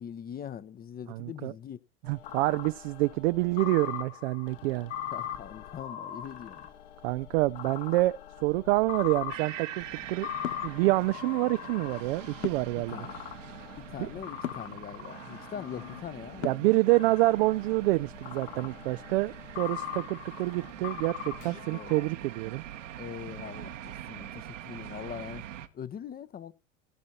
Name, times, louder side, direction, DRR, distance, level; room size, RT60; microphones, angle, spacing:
voice 1, 0.0-1.8 5.1-6.7 12.8-13.2 13.8-16.8 21.7-22.1 23.0-25.4 25.7-26.5, left 8 dB, 25° left, 0.8 m, -42 dB
voice 2, 1.1-1.5 2.1-4.9 7.0-10.3 10.6-13.1 16.4-22.6, right 20 dB, 55° right, 0.5 m, -27 dB
sound 1, 2.0-16.4 16.9-22.0, left 10 dB, 60° left, 1.8 m, -41 dB
sound 2, 9.3-25.7, right 11 dB, 70° right, 1.3 m, -44 dB
sound 3, 10.4-10.7 12.4-12.8 14.4-14.7 16.4-16.8, left 11 dB, 85° left, 0.6 m, -36 dB
17.0 x 6.3 x 4.2 m
figure-of-eight pair, 80°, 39 cm